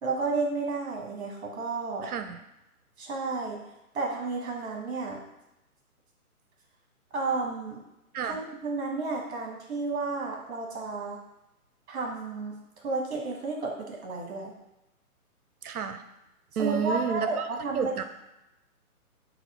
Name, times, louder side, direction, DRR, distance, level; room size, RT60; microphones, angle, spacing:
voice 1, 0.0-2.1 3.0-3.6 3.9-5.2 7.1-7.8 8.2-11.2 11.9-12.5 12.8-14.5 16.6-18.0, right 3 dB, 45° right, 0 dB, 1.2 m, -32 dB
voice 2, 2.0-2.4 8.1-8.4 15.6-16.0 16.6-18.0, right 7 dB, 75° right, 9 dB, 0.6 m, -31 dB
4.2 x 2.4 x 4.4 m, 0.92 s
figure-of-eight pair, 135°, 45 cm